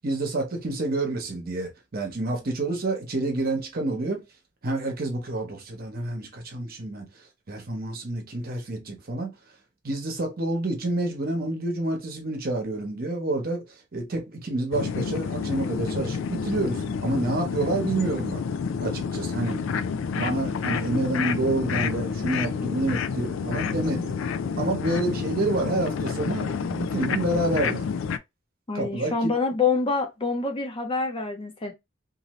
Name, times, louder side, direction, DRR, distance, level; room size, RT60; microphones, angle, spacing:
voice 1, 0.0-4.2 4.6-7.1 7.5-9.3 9.8-13.6 13.9-18.4 18.8-19.6 20.1-24.2 24.6-27.8 28.7-29.1, right 2 dB, 50° right, 0.9 m, -28 dB
sound 1, 14.7-28.2, left 6 dB, 80° left, 0.3 m, -29 dB
voice 2, 28.7-31.7, left 4 dB, 30° left, 0.6 m, -26 dB
2.6 x 2.6 x 3.0 m
head